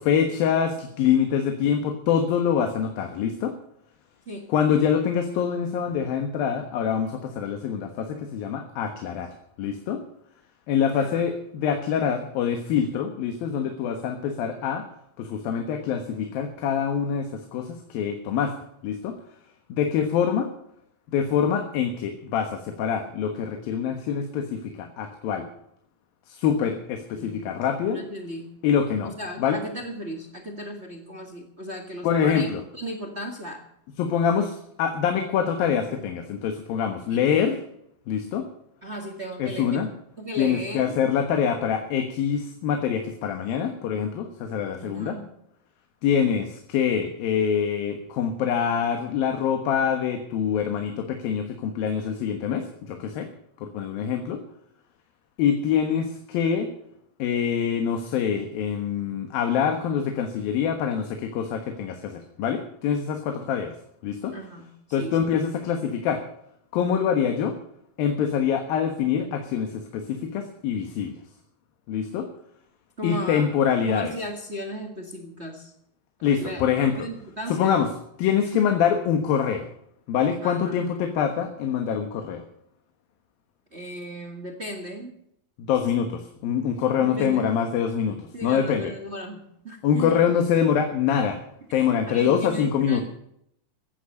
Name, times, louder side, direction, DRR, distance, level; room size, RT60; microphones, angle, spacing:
voice 1, 0.0-3.5 4.5-9.3 9.6-10.0 10.7-14.9 15.2-18.5 18.8-19.1 19.7-20.5 21.1-25.5 26.3-28.0 28.6-29.1 29.4-29.6 32.0-32.6 34.0-37.6 38.1-38.5 39.4-39.9 40.4-45.2 46.0-53.3 53.6-54.4 55.4-56.7 57.2-63.7 64.0-64.3 64.9-66.2 66.7-67.6 68.0-71.1 71.9-72.3 73.0-74.1 76.2-76.9 77.5-77.9 78.2-79.7 80.1-82.4 85.6-88.9 89.8-91.4 91.7-93.0, left 7 dB, 80° left, 5 dB, 3.1 m, -25 dB
voice 2, 10.9-11.2 27.2-27.6 27.9-28.5 29.0-33.6 37.1-37.4 38.8-39.8 40.2-41.0 44.8-45.3 64.3-64.7 65.0-65.2 73.0-73.5 73.8-75.7 76.2-76.6 76.9-77.7 78.5-78.7 80.4-80.8 83.7-85.2 87.0-87.6 88.3-90.2 91.8-93.0, equal, 35° right, 3 dB, 1.1 m, -36 dB
16.0 x 10.0 x 6.5 m, 0.73 s
omnidirectional pair, 4.1 m